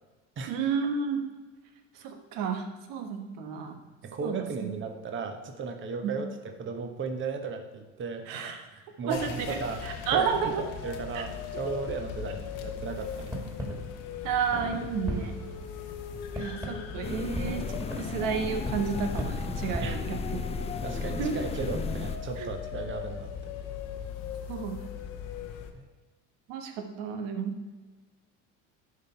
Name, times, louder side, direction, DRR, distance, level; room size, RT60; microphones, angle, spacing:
voice 1, 0.5-1.2 2.0-3.8 4.2-4.7 6.0-6.2 8.3-8.6 9.0-10.6 11.1-11.2 14.2-15.3 16.3-17.7 18.0-20.2 21.2-21.3 22.4-22.5 24.5-24.8 26.5-27.5, right 6 dB, 75° right, 6 dB, 1.3 m, -31 dB
voice 2, 4.0-8.3 9.0-9.8 10.1-13.4 19.8-20.0 20.8-23.3 25.7-25.8, right 4 dB, 35° right, 5 dB, 1.1 m, -36 dB
sound 1, 9.1-25.7, left 7 dB, 70° left, 1.1 m, -39 dB
sound 2, 13.1-20.8, right 1 dB, 10° right, 2.0 m, -39 dB
sound 3, 17.0-22.2, left 4 dB, 20° left, 0.4 m, -35 dB
11.0 x 3.9 x 4.5 m, 1.3 s
supercardioid pair, 100°, 33 cm